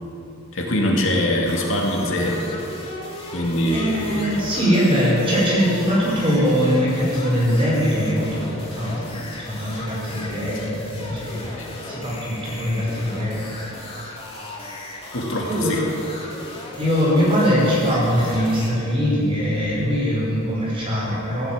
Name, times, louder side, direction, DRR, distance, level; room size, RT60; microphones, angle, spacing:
voice 1, 0.5-2.4 3.3-4.4 11.5-11.9 15.1-15.8, left 1 dB, 65° left, -1 dB, 2.3 m, -23 dB
sound 1, 1.4-18.7, left 2 dB, 25° left, 2.2 m, -36 dB
voice 2, 3.7-11.6 11.9-13.5 15.5-15.8 16.7-21.5, equal, 25° right, -5 dB, 4.9 m, -21 dB
15.5 x 11.5 x 7.5 m, 2.7 s
head